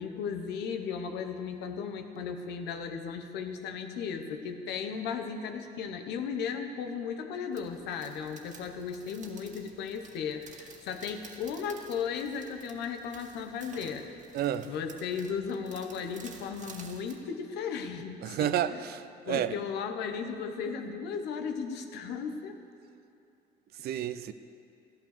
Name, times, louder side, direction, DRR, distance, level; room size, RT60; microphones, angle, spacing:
voice 1, 0.0-14.0 14.6-18.8 19.3-22.6, left 6 dB, 85° left, 6 dB, 1.2 m, -36 dB
sound 1, 7.5-17.2, right 5 dB, 45° right, 1.8 m, -53 dB
voice 2, 14.3-14.7 18.2-19.6 23.8-24.3, right 11 dB, 65° right, 13 dB, 0.6 m, -30 dB
14.0 x 12.0 x 6.8 m, 2.7 s
cardioid pair, 110°, 17 cm